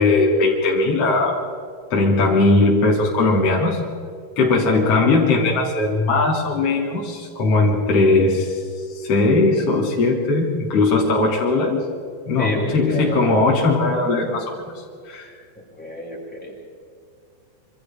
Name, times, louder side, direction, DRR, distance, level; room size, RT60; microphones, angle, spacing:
voice 1, 0.0-1.4 1.9-3.8 4.4-8.6 8.9-11.8 12.3-14.4 15.1-15.3, left 3 dB, 35° left, -4 dB, 3.6 m, -19 dB
voice 2, 12.4-13.2 15.8-16.5, equal, ahead, -5 dB, 6.9 m, -29 dB
27.5 x 27.0 x 3.8 m, 2.2 s
omnidirectional pair, 5.6 m